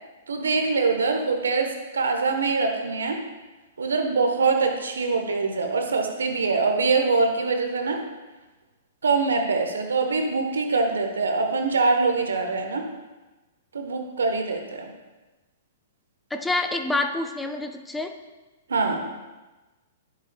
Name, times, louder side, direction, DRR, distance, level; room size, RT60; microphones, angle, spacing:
voice 1, 0.3-3.2 3.8-8.0 9.0-12.9 13.7-14.9 18.7-19.1, right 4 dB, 75° right, 4 dB, 1.0 m, -24 dB
voice 2, 16.3-18.2, left 2 dB, 5° left, 5 dB, 0.5 m, -27 dB
10.5 x 6.7 x 2.3 m, 1.2 s
figure-of-eight pair, 115°, 0 cm